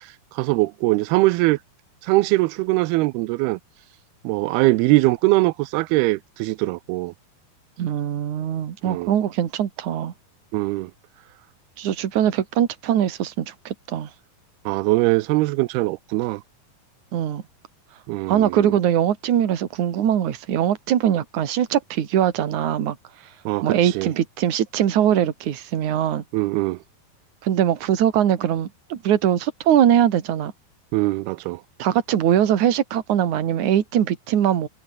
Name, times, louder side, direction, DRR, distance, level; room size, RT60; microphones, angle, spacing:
voice 1, 0.4-1.6 2.0-3.6 4.2-7.1 8.9-9.1 10.5-10.9 14.7-16.4 18.1-18.7 23.5-24.1 26.3-26.8 30.9-31.6, right 21 dB, 85° right, 2.6 m, -21 dB
voice 2, 7.8-10.1 11.8-14.1 17.1-17.4 18.3-23.0 23.6-26.2 27.4-30.5 31.8-34.7, right 10 dB, 55° right, 3.1 m, -21 dB
omnidirectional pair, 4.5 m